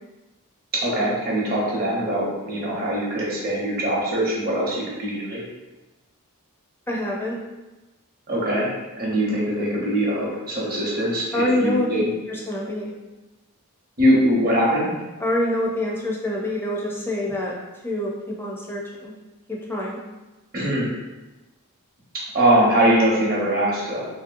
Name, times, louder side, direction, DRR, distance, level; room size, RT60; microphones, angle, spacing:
voice 1, 0.7-5.4 8.3-8.7 9.0-12.1 14.0-14.9 20.5-20.9 22.3-24.1, right 1 dB, 45° right, -5 dB, 0.9 m, -22 dB
voice 2, 6.9-7.4 11.3-11.9 12.3-12.9 15.2-17.5 17.8-19.1 19.5-20.0, left 1 dB, 10° left, -3 dB, 0.4 m, -26 dB
3.0 x 2.7 x 2.5 m, 1.1 s
head